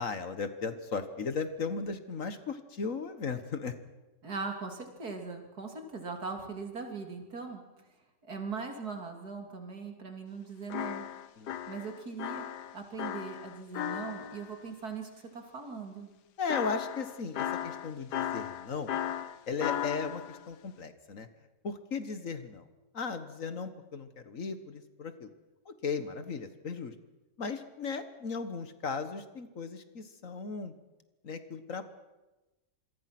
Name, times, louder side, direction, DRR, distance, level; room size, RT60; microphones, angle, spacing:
voice 1, 0.0-3.8 11.4-11.5 16.4-18.9 19.5-21.3 21.6-22.7 22.9-25.3 25.7-26.9 27.4-30.7 31.2-31.8, left 5 dB, 55° left, 10 dB, 1.7 m, -36 dB
voice 2, 4.2-7.6 8.2-11.1 11.7-12.4 12.7-16.1, right 4 dB, 70° right, 4 dB, 3.5 m, -40 dB
sound 1, 10.7-14.5 16.5-20.4, left 10 dB, 85° left, 1.5 m, -36 dB
27.0 x 22.5 x 6.1 m, 1.1 s
omnidirectional pair, 1.7 m